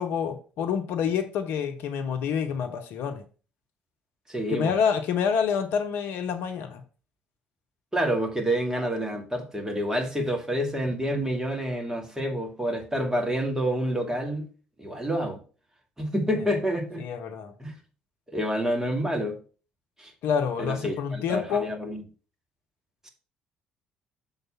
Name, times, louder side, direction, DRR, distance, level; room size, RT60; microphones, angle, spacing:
voice 1, 0.0-3.2 4.5-6.8 16.4-16.5 17.0-17.5 20.2-21.7, left 7 dB, 60° left, 0.8 m, -27 dB
voice 2, 4.3-4.7 7.9-14.5 14.8-15.4 16.0-17.0 17.6-17.7 18.3-19.4 20.0-20.1 20.6-22.0, equal, 15° right, 2.1 m, -28 dB
6.6 x 4.0 x 5.8 m
figure-of-eight pair, 50°, 4 cm